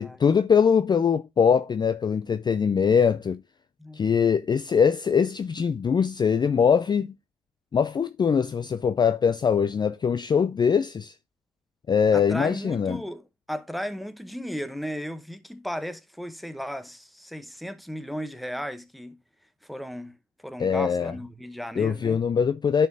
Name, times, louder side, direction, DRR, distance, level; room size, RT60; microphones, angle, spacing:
voice 1, 0.0-3.4 3.9-7.1 7.7-11.1 11.9-13.0 20.6-21.1 21.8-22.9, left 6 dB, 25° left, 0.4 m, -22 dB
voice 2, 12.1-19.2 19.6-20.2 20.4-22.2, equal, ahead, 0.8 m, -35 dB
10.5 x 4.4 x 2.6 m
supercardioid pair, 70°, 16 cm